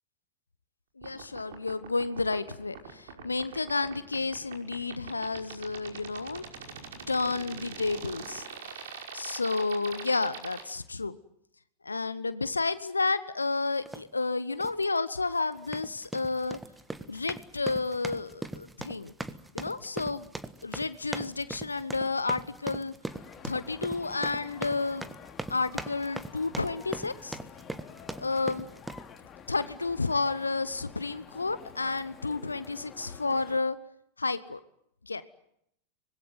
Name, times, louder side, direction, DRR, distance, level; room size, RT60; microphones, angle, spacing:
voice 1, 1.0-6.4 7.1-8.5 9.1-11.2 11.8-16.6 17.1-19.1 19.5-20.3 20.6-22.9 23.4-25.1 25.5-27.4 28.2-28.7 29.5-33.8 34.2-34.6 35.1-35.2, left 3 dB, 80° left, 14 dB, 1.1 m, -31 dB
sound 1, 1.0-10.6, right 7 dB, 60° right, 5.5 m, -42 dB
sound 2, 13.9-14.1 14.6-14.8 15.6-29.1, right 2 dB, 5° right, 1.5 m, -40 dB
sound 3, 23.0-33.6, left 7 dB, 25° left, 2.7 m, -49 dB
25.0 x 21.0 x 9.5 m, 0.75 s
figure-of-eight pair, 90°, 0 cm